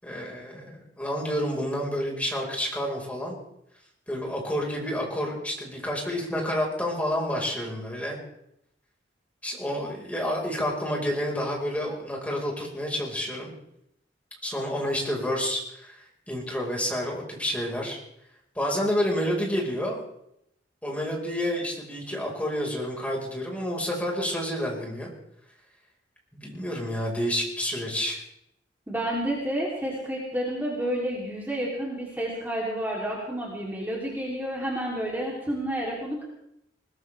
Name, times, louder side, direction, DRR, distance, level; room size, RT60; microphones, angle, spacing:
voice 1, 0.0-3.4 4.1-8.2 9.4-13.5 14.4-18.0 18.5-20.0 20.8-25.1 26.4-28.2, equal, 10° left, -1 dB, 4.6 m, -29 dB
voice 2, 28.9-36.2, right 1 dB, 10° right, -4 dB, 3.0 m, -30 dB
21.0 x 20.0 x 3.4 m, 0.78 s
head